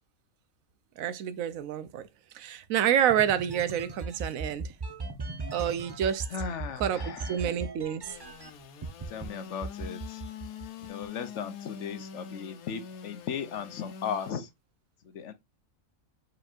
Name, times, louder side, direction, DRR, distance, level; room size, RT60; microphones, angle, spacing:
voice 1, 1.0-2.0 2.3-4.7 5.5-6.3 6.8-8.2, right 9 dB, 75° right, 1.0 m, -28 dB
sound 1, 3.1-8.5 8.8-9.3 9.6-11.1, right 3 dB, 40° right, 0.3 m, -37 dB
voice 2, 6.3-7.2 9.1-10.2 10.8-14.5 15.1-15.3, left 7 dB, 65° left, 0.9 m, -36 dB
Engine / Sawing, 8.1-14.3, left 7 dB, 90° left, 1.2 m, -44 dB
4.7 x 4.3 x 2.4 m
omnidirectional pair, 1.5 m